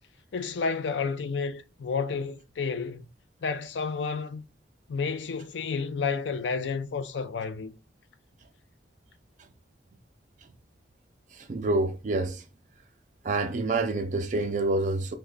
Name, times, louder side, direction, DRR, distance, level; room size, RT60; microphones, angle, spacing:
voice 1, 0.3-3.1 3.4-4.4 4.9-7.7, left 5 dB, 75° left, 0.4 m, -31 dB
voice 2, 11.3-12.4 13.2-15.1, right 2 dB, 40° right, 0.4 m, -27 dB
3.3 x 2.1 x 3.7 m
head